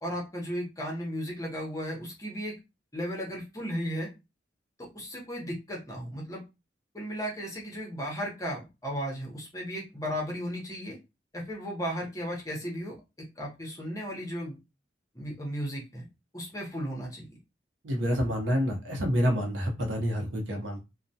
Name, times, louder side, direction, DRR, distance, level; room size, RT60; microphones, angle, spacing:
voice 1, 0.0-2.6 2.9-4.1 4.8-6.4 6.9-11.0 11.3-13.0 13.4-14.6 15.1-16.1 16.3-17.3, equal, 20° left, -2 dB, 0.7 m, -35 dB
voice 2, 17.8-20.8, equal, 80° right, 2 dB, 0.7 m, -28 dB
2.2 x 2.1 x 2.7 m, 0.25 s
head